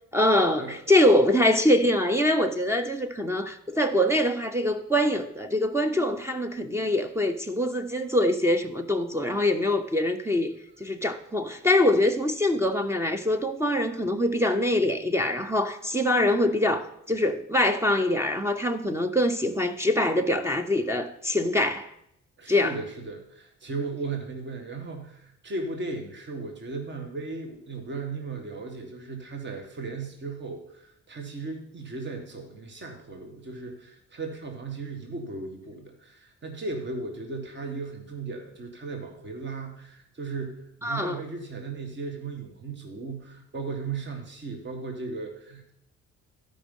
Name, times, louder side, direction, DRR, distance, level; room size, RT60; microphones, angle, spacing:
voice 1, 0.1-10.5 10.8-21.9 22.5-22.7 40.8-41.2, left 1 dB, 10° right, 0.7 m, -24 dB
voice 2, 22.4-45.7, right 3 dB, 35° right, 1.7 m, -36 dB
13.0 x 5.3 x 5.4 m
cardioid pair, 90°, 30 cm